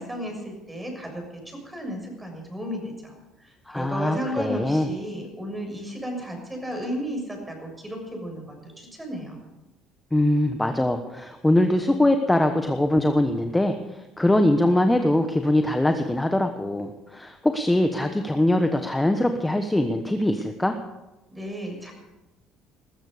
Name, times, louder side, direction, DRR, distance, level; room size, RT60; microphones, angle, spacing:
voice 1, 0.0-3.1 3.4-9.4 21.3-21.9, equal, 10° right, 2 dB, 6.6 m, -34 dB
voice 2, 3.7-4.9 10.1-20.8, left 1 dB, 10° left, 6 dB, 1.1 m, -22 dB
20.0 x 14.0 x 5.0 m, 1.0 s
supercardioid pair, 95°, 0 cm